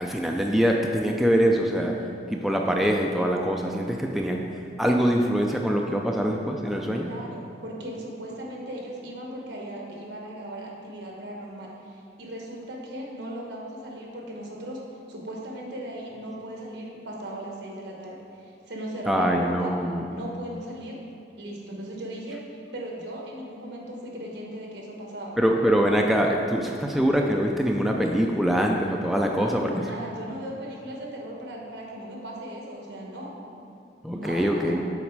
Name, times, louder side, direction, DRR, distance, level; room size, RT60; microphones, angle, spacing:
voice 1, 0.0-1.9 2.3-4.4 4.8-7.1 19.1-20.1 25.4-29.7 34.0-34.9, equal, ahead, 0 dB, 0.3 m, -23 dB
voice 2, 7.0-14.8 15.1-19.7 20.1-21.0 21.4-25.4 29.1-33.4 34.1-34.8, right 1 dB, 75° right, -1 dB, 1.1 m, -38 dB
7.2 x 4.0 x 4.6 m, 2.5 s
head